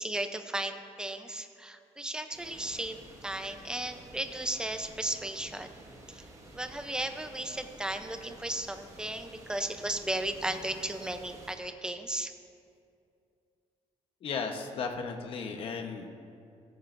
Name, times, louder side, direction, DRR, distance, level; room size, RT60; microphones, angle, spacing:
voice 1, 0.0-5.7 6.1-6.2 6.5-12.3, right 1 dB, 5° right, 7 dB, 0.6 m, -35 dB
sound 1, 2.3-11.5, right 1 dB, 30° right, 1.6 m, -51 dB
voice 2, 14.2-16.1, left 5 dB, 50° left, 4 dB, 1.1 m, -35 dB
15.0 x 15.0 x 2.6 m, 2.4 s
cardioid pair, 150°, 12 cm